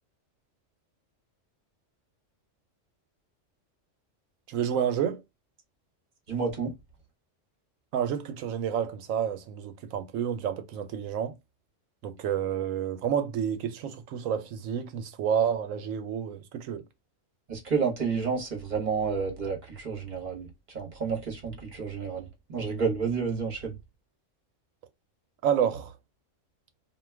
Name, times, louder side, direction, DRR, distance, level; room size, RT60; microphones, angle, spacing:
voice 1, 4.5-5.2 7.9-11.3 12.0-16.8 25.4-25.9, right 8 dB, 85° right, 1.0 m, -29 dB
voice 2, 6.3-6.7 17.5-23.8, right 5 dB, 40° right, 1.0 m, -30 dB
2.5 x 2.3 x 3.2 m
omnidirectional pair, 1.3 m